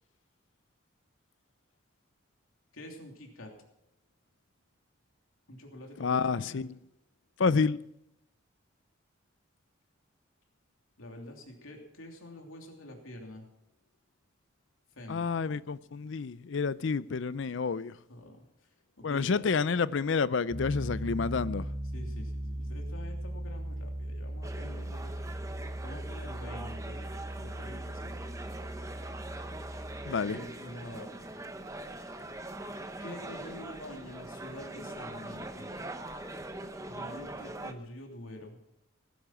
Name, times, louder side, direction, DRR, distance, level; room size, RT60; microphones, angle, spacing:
voice 1, 2.7-3.5 5.5-6.7 11.0-13.5 14.9-15.3 18.1-18.4 19.0-19.5 21.9-25.1 25.8-27.0 27.4-28.6 30.1-31.1 33.0-35.7 36.8-38.6, left 1 dB, 90° left, 3.0 m, -47 dB
voice 2, 6.0-6.8 7.4-7.8 15.1-17.9 19.0-21.7 30.1-30.4, left 5 dB, 65° left, 0.5 m, -29 dB
Piano, 20.5-30.1, right 1 dB, 55° right, 2.5 m, -38 dB
sound 1, 24.4-37.7, right 2 dB, 15° right, 0.8 m, -42 dB
17.5 x 10.5 x 6.0 m
head